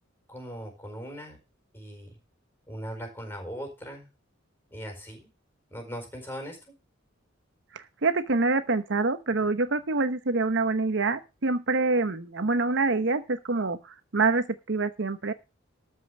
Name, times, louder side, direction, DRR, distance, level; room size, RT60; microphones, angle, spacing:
voice 1, 0.3-1.4 1.7-2.1 2.7-4.1 4.7-5.3 5.7-6.6, equal, 10° left, 4 dB, 4.5 m, -39 dB
voice 2, 7.7-15.3, right 3 dB, 65° right, 10 dB, 1.0 m, -26 dB
13.5 x 5.7 x 6.2 m, 0.28 s
head